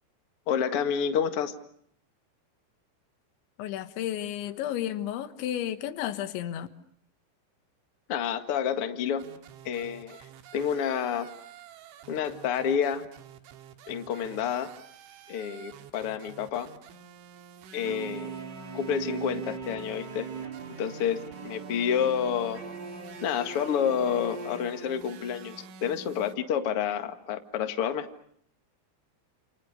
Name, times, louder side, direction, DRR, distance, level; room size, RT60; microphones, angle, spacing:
voice 1, 0.5-1.5 8.1-9.3 9.6-10.3 10.5-11.3 12.1-13.1 13.9-14.7 15.3-16.7 17.7-18.3 18.7-20.3 20.8-22.6 23.2-25.5 25.8-28.1, left 8 dB, 90° left, 1.2 m, -29 dB
voice 2, 3.6-6.7, left 11 dB, 70° left, 3.4 m, -32 dB
sound 1, 9.2-26.4, right 5 dB, 75° right, 3.9 m, -49 dB
sound 2, 17.8-25.6, right 6 dB, 25° right, 3.3 m, -40 dB
29.5 x 29.0 x 6.6 m
omnidirectional pair, 5.8 m